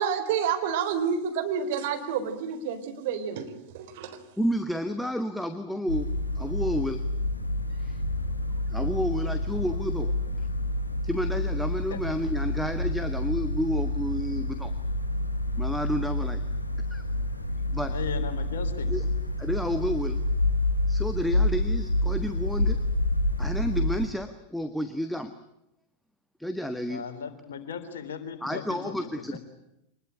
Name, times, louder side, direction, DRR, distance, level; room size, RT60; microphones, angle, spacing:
voice 1, 0.0-4.2, right 7 dB, 50° right, 7 dB, 3.8 m, -29 dB
voice 2, 4.4-6.1 6.3-7.0 7.8-8.0 8.7-10.1 11.0-14.7 15.6-16.4 16.9-17.0 17.7-18.0 18.9-19.1 19.4-20.2 20.9-22.8 23.4-25.3 26.4-27.0 28.4-29.4, equal, ahead, 9 dB, 1.5 m, -30 dB
sound 1, 5.9-24.1, left 1 dB, 80° left, 2.8 m, -28 dB
voice 3, 17.9-18.9 26.9-29.4, left 6 dB, 65° left, 8 dB, 3.6 m, -37 dB
25.5 x 21.0 x 9.9 m, 0.84 s
figure-of-eight pair, 90°, 0 cm